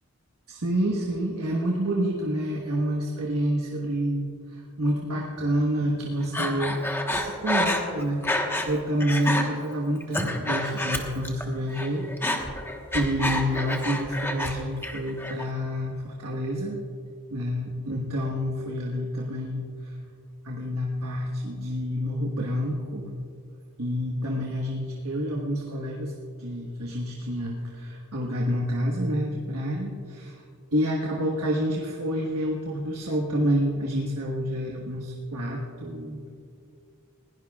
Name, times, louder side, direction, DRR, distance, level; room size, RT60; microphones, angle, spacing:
voice 1, 0.5-6.8 7.1-8.2 8.7-12.5 12.9-16.8 17.3-19.9 20.4-23.1 23.8-26.1 26.4-30.4 30.7-36.4, equal, 85° right, -2 dB, 1.4 m, -28 dB
Breathing, 6.3-8.7 9.0-9.4 9.9-11.4 11.7-14.5 14.8-15.5, left 1 dB, 10° left, 1.2 m, -28 dB
21.0 x 17.0 x 2.4 m, 2.3 s
head